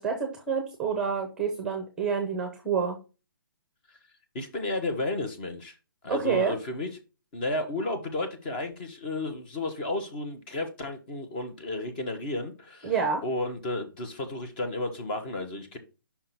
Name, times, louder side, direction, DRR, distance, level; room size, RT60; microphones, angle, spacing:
voice 1, 0.0-3.0 6.1-6.5 12.8-13.2, right 6 dB, 5° right, 0.9 m, -28 dB
voice 2, 4.3-5.7 6.0-6.9 7.3-12.9 13.2-15.8, left 2 dB, 25° left, 1.1 m, -32 dB
5.7 x 3.7 x 5.9 m
hypercardioid pair, 170°, 12 cm